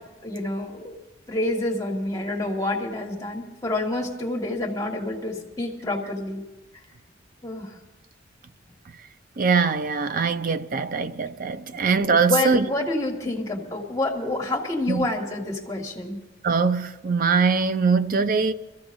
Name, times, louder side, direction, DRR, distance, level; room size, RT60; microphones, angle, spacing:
voice 1, 0.2-1.0 1.3-6.4 7.4-7.8 11.7-11.8 12.3-16.2, left 2 dB, 20° left, 1.8 m, -28 dB
voice 2, 9.4-12.7 14.9-15.1 16.4-18.5, right 5 dB, 50° right, 0.5 m, -22 dB
24.5 x 14.5 x 2.7 m
head